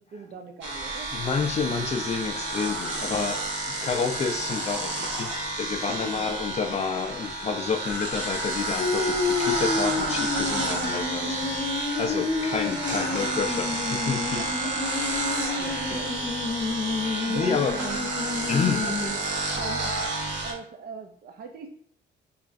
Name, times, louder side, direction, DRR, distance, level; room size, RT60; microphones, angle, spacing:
voice 1, 0.0-1.1 6.0-6.3 11.2-11.5 12.1-12.5 14.4-14.9 15.6-18.1 18.8-19.3 19.6-20.0 20.4-21.7, right 5 dB, 50° right, 4 dB, 0.4 m, -41 dB
sound 1, 0.6-20.5, right 2 dB, 75° right, 1.0 m, -30 dB
voice 2, 1.1-3.4 3.8-5.3 5.6-14.5 15.9-16.1 16.8-17.8 18.5-18.9, left 5 dB, 35° left, 4 dB, 0.4 m, -29 dB
sound 2, 8.8-19.1, left 4 dB, 50° left, 0.8 m, -30 dB
3.6 x 3.2 x 2.5 m, 0.63 s
cardioid pair, 90°, 20 cm